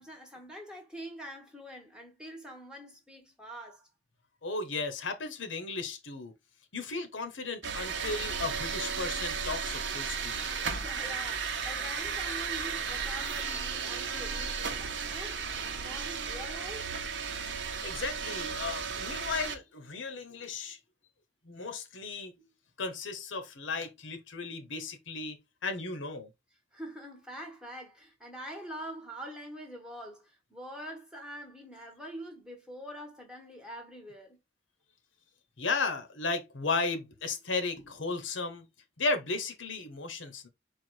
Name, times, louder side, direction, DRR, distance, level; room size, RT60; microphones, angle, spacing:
voice 1, 0.0-3.9 10.7-16.9 26.7-34.4, equal, 5° right, 1.2 m, -45 dB
voice 2, 4.4-6.3 6.7-10.5 17.8-20.8 21.4-22.3 22.8-26.3 35.6-38.6 39.0-40.5, left 3 dB, 80° left, 1.0 m, -35 dB
sound 1, 7.6-19.5, right 6 dB, 65° right, 0.8 m, -34 dB
4.4 x 2.3 x 4.5 m
head